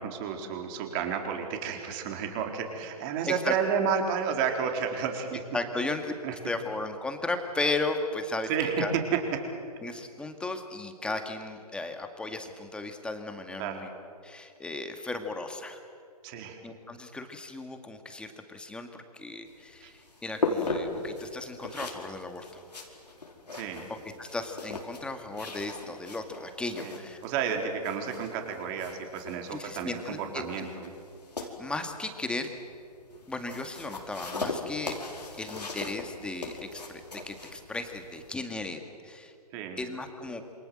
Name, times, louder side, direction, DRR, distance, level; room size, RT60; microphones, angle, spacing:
voice 1, 0.0-5.4 5.8-5.9 6.2-6.4 8.5-9.4 13.6-13.8 16.2-16.6 19.8-19.9 23.5-23.8 26.8-26.9 27.2-30.9 39.5-39.8, right 6 dB, 30° right, 3 dB, 4.2 m, -31 dB
voice 2, 5.5-6.1 6.4-8.5 8.8-8.9 9.8-13.9 14.2-15.8 16.6-22.6 24.2-27.2 29.5-30.7 31.4-32.5 33.3-35.0 35.4-39.3 39.8-40.4, left 2 dB, 5° left, 6 dB, 2.0 m, -35 dB
sound 1, 19.4-38.3, left 3 dB, 90° left, 4.9 m, -39 dB
28.0 x 26.5 x 7.8 m, 2.4 s
hypercardioid pair, 135°, 20 cm